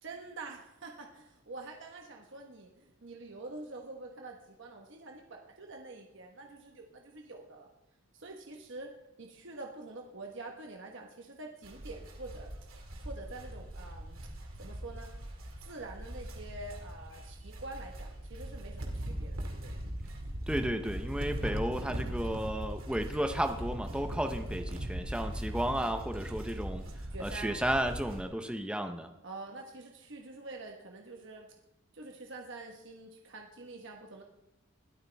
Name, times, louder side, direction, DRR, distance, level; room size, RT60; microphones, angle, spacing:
voice 1, 0.0-7.7 8.1-8.9 9.2-12.5 13.0-14.3 14.6-15.1 15.6-19.7 25.5-26.1 27.1-27.6 29.2-31.5 31.9-34.2, right 2 dB, 60° right, 1 dB, 1.3 m, -46 dB
sound 1, 11.6-28.2, right 1 dB, 80° right, 2.2 m, -40 dB
voice 2, 20.5-26.8 27.2-29.1, right 1 dB, 5° right, 6 dB, 0.7 m, -33 dB
21.0 x 12.5 x 3.4 m, 0.94 s
head